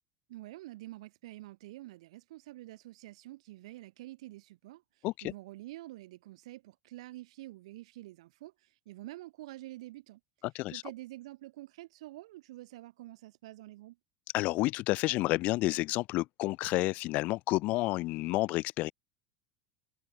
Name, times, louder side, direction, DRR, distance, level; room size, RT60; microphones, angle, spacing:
voice 1, 0.3-10.2 10.7-14.0, right 17 dB, 80° right, 1.7 m, -48 dB
voice 2, 10.4-10.8 14.3-18.9, left 20 dB, 55° left, 1.4 m, -30 dB
supercardioid pair, 120°, 3 cm